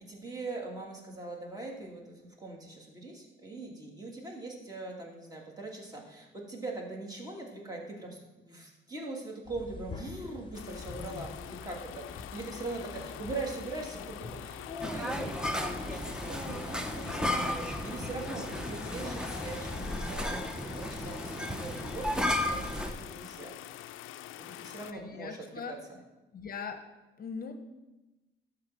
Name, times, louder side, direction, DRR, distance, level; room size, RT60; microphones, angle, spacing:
voice 1, 0.0-11.8 12.1-23.5 24.4-26.0, right 2 dB, 20° right, -2 dB, 2.7 m, -41 dB
sound 1, 9.4-20.3, left 3 dB, 25° left, 1.1 m, -47 dB
sound 2, 10.5-24.9, left 13 dB, 90° left, 0.4 m, -45 dB
sound 3, 14.8-22.9, left 1 dB, 5° right, 0.8 m, -34 dB
voice 2, 24.9-25.8 26.3-26.8 27.2-27.5, left 6 dB, 45° left, 7 dB, 0.9 m, -40 dB
12.0 x 4.0 x 7.6 m, 1.1 s
cardioid pair, 90°, 20 cm